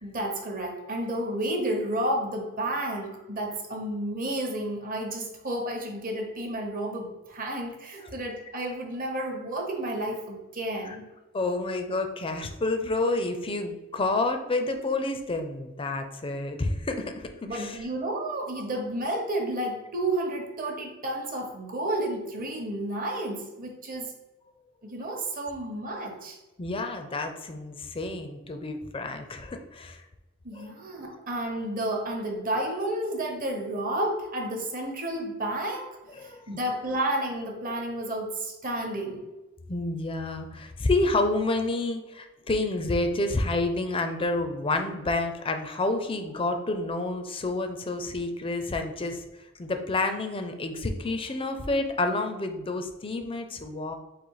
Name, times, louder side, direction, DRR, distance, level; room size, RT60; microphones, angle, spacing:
voice 1, 0.0-11.0 17.4-24.1 24.8-26.4 30.4-35.9 36.2-39.2, right 1 dB, 40° right, 2 dB, 0.9 m, -31 dB
voice 2, 11.3-17.8 26.6-30.0 30.5-30.7 31.1-31.3 36.2-36.4 39.7-49.2 49.6-53.9, left 2 dB, 25° left, 6 dB, 0.5 m, -29 dB
4.1 x 2.6 x 4.7 m, 1.1 s
head